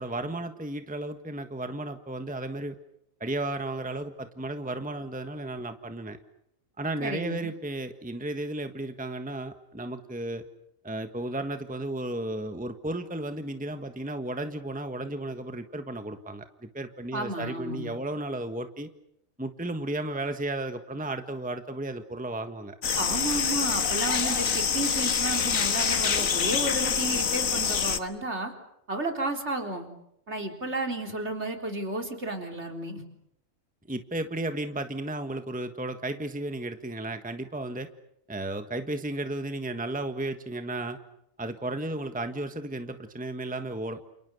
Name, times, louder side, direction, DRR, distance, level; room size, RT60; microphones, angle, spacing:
voice 1, 0.0-2.7 3.2-6.2 6.8-10.4 10.8-18.9 19.4-22.8 33.9-37.9 38.3-41.0 41.4-44.1, right 1 dB, 5° right, 8 dB, 1.4 m, -34 dB
voice 2, 7.0-7.5 17.1-18.0 23.0-28.5 28.9-29.9 30.3-33.0, right 2 dB, 55° right, 4 dB, 4.2 m, -32 dB
sound 1, 22.8-28.0, left 7 dB, 85° left, 1.7 m, -26 dB
29.0 x 29.0 x 6.8 m, 0.80 s
omnidirectional pair, 1.4 m